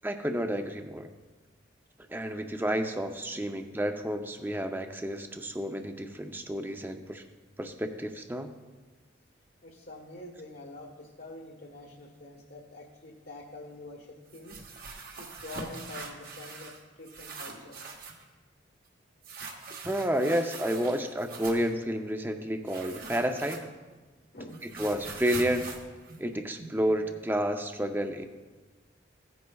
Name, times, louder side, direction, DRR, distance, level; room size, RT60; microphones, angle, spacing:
voice 1, 0.0-1.1 2.1-7.2 7.6-8.5 19.9-23.6 24.8-25.6 26.2-28.3, equal, 10° right, 6 dB, 0.6 m, -30 dB
voice 2, 9.6-14.7 15.2-17.9 24.3-24.8, left 2 dB, 55° left, -3 dB, 1.2 m, -46 dB
sound 1, 14.3-16.8 17.1-18.2 19.2-21.7 22.7-24.0 24.2-26.9, right 4 dB, 50° right, 1.3 m, -43 dB
16.0 x 9.5 x 2.3 m, 1.3 s
head